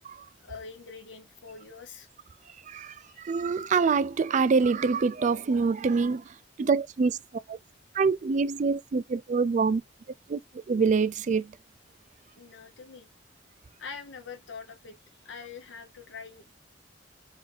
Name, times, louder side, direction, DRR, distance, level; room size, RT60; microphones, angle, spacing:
voice 1, 0.4-2.1 3.1-3.4 12.3-13.1 13.8-15.0 15.2-16.5, left 5 dB, 80° left, 0.9 m, -44 dB
voice 2, 2.7-7.2 7.5-7.6 7.9-9.8 10.3-10.4 10.7-11.5, right 4 dB, 40° right, 0.4 m, -25 dB
4.1 x 2.6 x 4.8 m
head